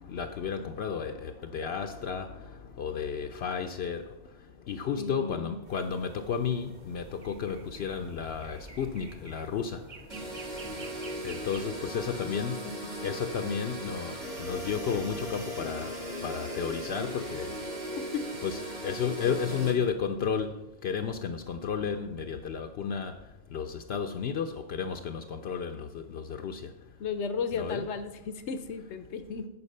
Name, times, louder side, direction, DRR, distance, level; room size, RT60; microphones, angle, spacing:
voice 1, 0.1-2.3 2.8-4.0 4.7-9.8 11.2-12.6 13.0-15.9 16.2-17.5 18.4-20.5 20.8-23.1 23.5-26.6 27.5-27.8, left 6 dB, 70° left, 6 dB, 0.8 m, -32 dB
voice 2, 5.0-5.5 11.9-12.5 13.0-13.2 18.0-18.3 19.3-19.7 27.0-29.5, left 5 dB, 85° left, 9 dB, 1.1 m, -35 dB
sound 1, 5.7-11.6, right 2 dB, 45° right, 1.2 m, -48 dB
sound 2, 10.1-19.7, equal, 65° right, 2.2 m, -38 dB
9.7 x 4.8 x 6.5 m, 0.98 s
omnidirectional pair, 1.1 m